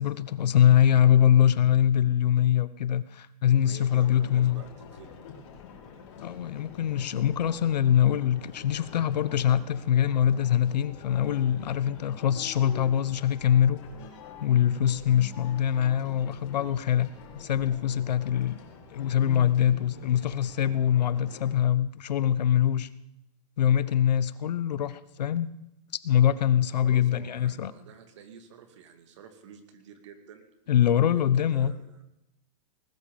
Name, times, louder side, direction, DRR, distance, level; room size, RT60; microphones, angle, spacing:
voice 1, 0.0-4.6 6.2-13.8 14.4-18.6 18.9-22.9 23.6-25.5 26.0-27.7 30.7-31.7, left 10 dB, 85° left, 15 dB, 1.1 m, -23 dB
voice 2, 3.6-5.2 26.5-30.4 31.0-32.0, right 7 dB, 45° right, 7 dB, 2.4 m, -49 dB
sound 1, 3.8-21.5, left 7 dB, 45° left, 4.3 m, -46 dB
20.0 x 13.0 x 5.4 m, 0.84 s
supercardioid pair, 180°, 21 cm